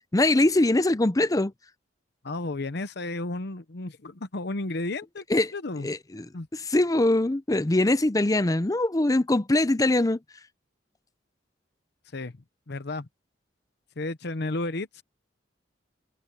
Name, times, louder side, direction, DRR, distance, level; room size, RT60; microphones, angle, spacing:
voice 1, 0.1-1.5 5.3-5.5 5.8-6.3 6.5-10.2, left 2 dB, 20° left, 0.6 m, -22 dB
voice 2, 2.2-5.2 5.5-5.9 6.3-6.5 12.1-12.3 12.7-13.1 14.0-15.0, left 2 dB, 60° left, 0.9 m, -32 dB
head